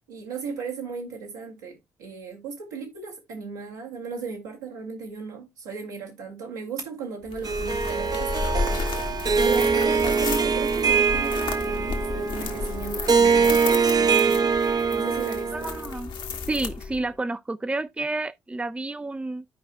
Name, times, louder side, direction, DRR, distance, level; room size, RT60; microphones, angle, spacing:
voice 1, 0.1-14.5 14.9-15.7, right 5 dB, 85° right, 2.2 m, -36 dB
sound 1, 7.3-17.1, left 4 dB, 55° left, 1.2 m, -33 dB
Harp, 7.4-15.9, right 5 dB, 40° right, 0.7 m, -23 dB
voice 2, 15.5-16.1 16.5-19.4, right 2 dB, 10° right, 0.5 m, -30 dB
13.5 x 5.0 x 2.2 m
hypercardioid pair, 40°, 10 cm